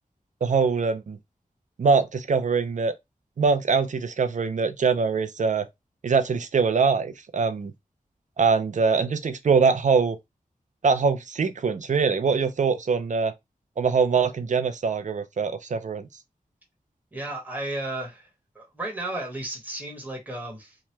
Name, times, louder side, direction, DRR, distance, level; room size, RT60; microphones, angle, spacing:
voice 1, 0.4-1.2 1.8-2.9 3.4-5.7 6.0-7.7 8.4-10.2 10.8-13.3 13.8-16.0, right 5 dB, 55° right, 0.5 m, -23 dB
voice 2, 17.1-18.3 18.5-20.8, right 1 dB, 10° right, 1.1 m, -33 dB
2.9 x 2.2 x 3.2 m
wide cardioid pair, 95°, 15 cm